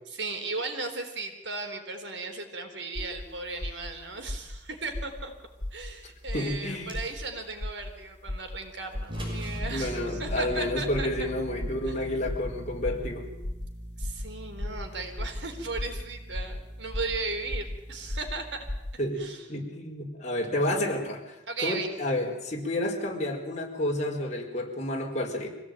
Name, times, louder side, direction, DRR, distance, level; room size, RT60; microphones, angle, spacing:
voice 1, 0.1-5.3 5.7-11.1 11.9-12.0 14.0-18.7 19.2-19.5 21.5-21.9, right 3 dB, 85° right, 5 dB, 3.9 m, -36 dB
sound 1, 2.9-3.2 3.6-3.9 4.3-4.6 4.9-5.2 5.6-5.9 6.3-6.6 6.9-7.2 7.6-7.9 8.3-8.6 8.9-9.2 9.6-9.9 10.2-10.6 10.9-11.2 11.6-11.9 12.2-12.5 12.8-13.1 13.4-13.7 14.0-14.3 14.6-14.8 15.2-15.4 15.7-16.0 16.3-16.6 16.9-17.2 17.5-17.7 18.1-18.3 18.7-18.9, left 1 dB, 70° left, 1.9 m, -34 dB
voice 2, 6.3-6.9 9.7-13.3 19.0-25.5, left 1 dB, 40° left, 1 dB, 4.9 m, -30 dB
sound 2, 6.6-7.5 8.9-9.6, right 1 dB, 30° right, 7.7 m, -45 dB
Bass guitar, 9.1-19.0, equal, 60° right, 2.7 m, -41 dB
25.0 x 17.0 x 9.1 m, 1.0 s
head